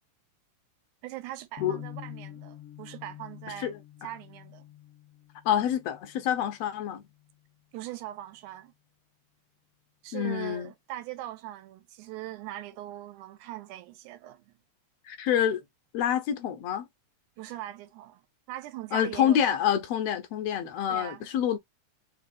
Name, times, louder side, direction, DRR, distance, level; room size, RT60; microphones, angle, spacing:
voice 1, 1.0-3.7 4.0-4.7 7.7-8.7 10.0-14.6 17.4-19.6 20.9-21.3, right 14 dB, 80° right, 2.2 m, -41 dB
sound 1, 1.6-7.6, left 13 dB, 90° left, 1.2 m, -47 dB
voice 2, 5.4-7.0 10.1-10.7 15.0-15.6 15.9-16.9 18.9-21.6, left 10 dB, 75° left, 1.6 m, -27 dB
4.8 x 3.4 x 2.4 m
omnidirectional pair, 3.5 m